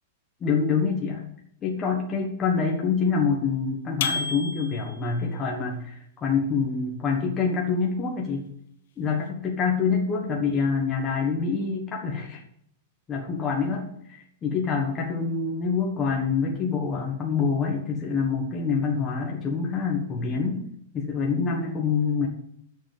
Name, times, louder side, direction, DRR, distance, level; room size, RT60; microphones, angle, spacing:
voice 1, 0.4-1.3 1.6-8.5 9.0-12.4 13.1-20.6 20.9-22.3, left 5 dB, 15° left, -1 dB, 1.3 m, -26 dB
sound 1, 4.0-5.1, left 4 dB, 60° left, 1.2 m, -30 dB
9.9 x 6.8 x 7.3 m, 0.68 s
supercardioid pair, 180°, 0 cm